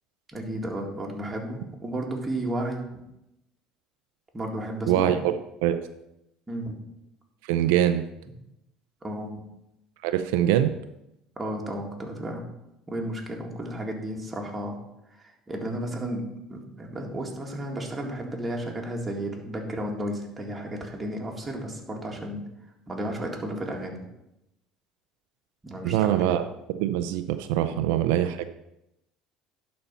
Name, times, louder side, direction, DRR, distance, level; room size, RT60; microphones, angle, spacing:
voice 1, 0.3-2.9 4.3-5.2 6.5-6.8 9.0-9.4 11.4-12.5 12.9-14.8 15.2-22.4 22.9-24.1 25.6-26.4, right 1 dB, 15° right, 0 dB, 1.9 m, -33 dB
voice 2, 4.9-5.3 5.6-5.8 7.4-8.0 10.0-10.7 25.8-26.4 26.8-28.5, right 11 dB, 85° right, 9 dB, 0.5 m, -23 dB
11.0 x 4.3 x 5.5 m, 0.86 s
supercardioid pair, 115°, 0 cm